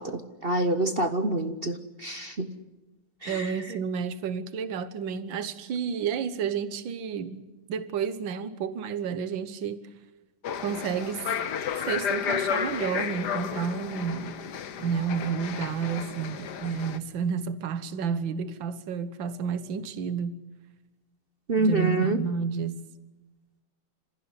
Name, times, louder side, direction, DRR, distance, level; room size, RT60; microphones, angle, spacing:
voice 1, 0.0-2.5 3.2-3.5 21.5-22.2, right 2 dB, 40° right, 0.9 m, -27 dB
voice 2, 3.3-9.8 10.6-11.2 11.7-14.3 14.8-20.4 21.6-22.8, right 7 dB, 65° right, 1.9 m, -31 dB
sound 1, 10.4-17.0, left 8 dB, 60° left, 1.5 m, -32 dB
27.0 x 15.5 x 9.7 m
omnidirectional pair, 2.3 m